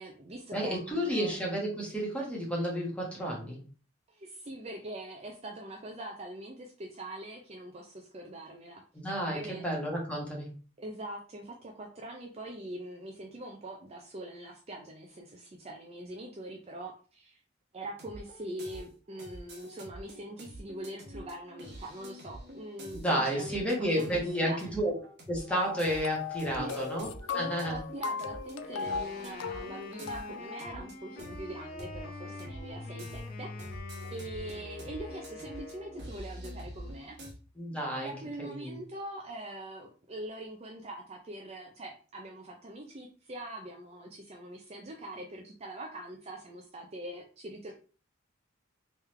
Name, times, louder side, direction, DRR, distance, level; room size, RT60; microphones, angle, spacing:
voice 1, 0.0-1.4 4.1-9.8 10.8-17.4 17.7-24.7 26.5-26.8 27.3-33.8 34.1-37.2 37.9-47.7, right 1 dB, 30° right, 1 dB, 0.5 m, -43 dB
voice 2, 0.5-3.6 8.9-10.6 22.9-24.9 25.3-27.1 27.3-27.8 37.6-38.1 38.4-38.8, equal, 5° left, -3 dB, 1.3 m, -31 dB
sound 1, 17.9-37.3, equal, 55° right, 1.1 m, -46 dB
sound 2, 25.5-30.7, left 6 dB, 65° left, 0.3 m, -38 dB
Wind instrument woodwind instrument, 28.6-36.2, left 2 dB, 45° left, 0.7 m, -47 dB
3.6 x 3.1 x 3.2 m, 0.38 s
head